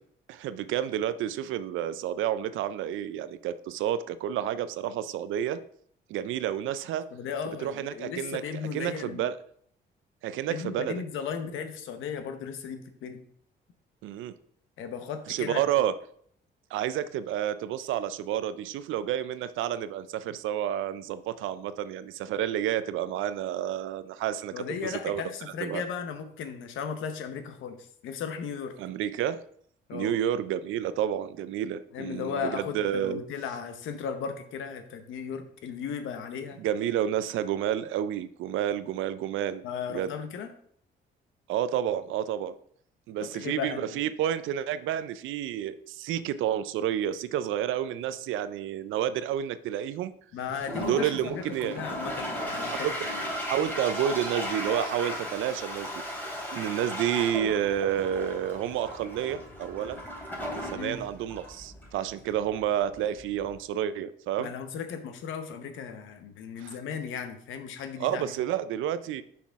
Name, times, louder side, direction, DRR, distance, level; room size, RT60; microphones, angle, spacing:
voice 1, 0.3-5.6 6.1-7.0 7.6-8.4 8.7-9.4 10.2-11.0 14.0-14.3 15.3-15.9 16.7-24.5 24.8-25.2 25.6-25.8 28.8-29.4 29.9-33.2 36.6-39.6 39.9-40.1 41.5-42.5 43.1-50.1 50.8-51.8 52.6-53.1 53.3-56.0 56.5-60.0 60.6-64.5 66.6-66.8 68.0-69.2, right 10 dB, 80° right, 14 dB, 0.4 m, -30 dB
voice 2, 7.1-9.2 10.5-13.2 14.8-15.6 24.5-28.8 29.9-30.2 31.9-36.6 39.6-40.5 43.2-44.0 50.3-52.9 60.8-61.0 64.4-68.2, left 7 dB, 85° left, 7 dB, 0.9 m, -36 dB
Toilet flush, 50.5-63.6, equal, 10° left, 2.8 m, -36 dB
6.2 x 5.9 x 3.5 m, 0.64 s
cardioid pair, 90°, 20 cm